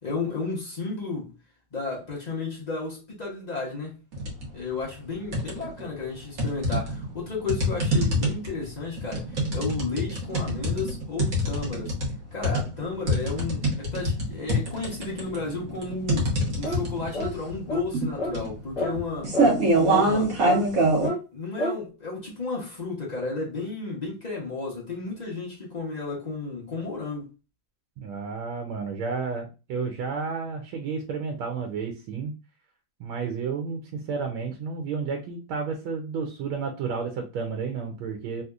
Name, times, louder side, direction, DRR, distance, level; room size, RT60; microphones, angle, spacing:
voice 1, 0.0-1.3 1.7-3.9 4.5-11.9 12.3-19.3 19.7-20.3 21.3-27.3, left 3 dB, 75° left, 0.4 m, -33 dB
sound 1, 4.1-4.5 4.9-5.8 6.4-21.1, right 1 dB, 50° right, 1.3 m, -25 dB
sound 2, 16.6-16.9 17.1-17.3 17.7-17.9 18.2-18.4 18.8-18.9 19.3-19.5 19.9-20.1 20.5-20.6 21.0-21.2 21.6-21.8, equal, 45° left, 1.5 m, -28 dB
voice 2, 28.0-32.3 33.0-38.4, right 5 dB, 90° right, 1.5 m, -31 dB
3.5 x 2.8 x 2.3 m
omnidirectional pair, 2.2 m